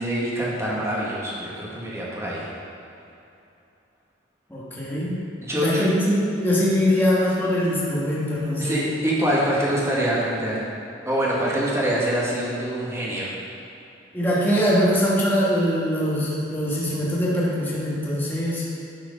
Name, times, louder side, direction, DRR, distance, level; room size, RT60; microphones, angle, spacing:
voice 1, 0.0-2.5 5.4-5.9 8.6-10.7 11.1-13.3, equal, 15° right, -6 dB, 1.7 m, -25 dB
voice 2, 4.5-5.2 5.5-6.0 6.3-8.9 14.1-18.6, equal, 10° left, -7 dB, 1.5 m, -22 dB
11.0 x 4.7 x 5.2 m, 2.8 s
head